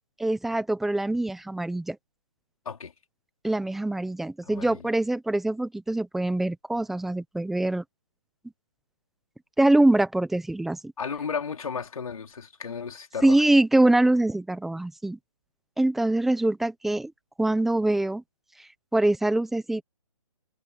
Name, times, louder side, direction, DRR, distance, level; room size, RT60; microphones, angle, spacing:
voice 1, 0.2-2.0 3.4-7.8 9.6-10.9 13.2-15.2 15.8-17.1 17.4-18.2 18.9-19.8, right 1 dB, ahead, 0.9 m, -24 dB
voice 2, 4.4-4.9 11.0-13.4, left 6 dB, 65° left, 4.4 m, -34 dB
hypercardioid pair, 165°, 19 cm